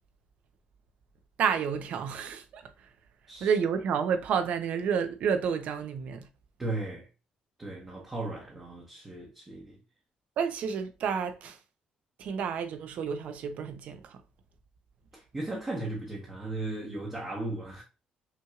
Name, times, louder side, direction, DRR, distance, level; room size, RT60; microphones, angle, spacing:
voice 1, 1.4-2.6 3.4-6.3 10.4-11.6 12.2-14.2, right 7 dB, 60° right, 0.7 m, -30 dB
voice 2, 6.6-7.1 7.6-9.8 15.1-17.8, right 2 dB, 20° right, 0.9 m, -36 dB
5.9 x 3.0 x 2.4 m
cardioid pair, 165°, 3 cm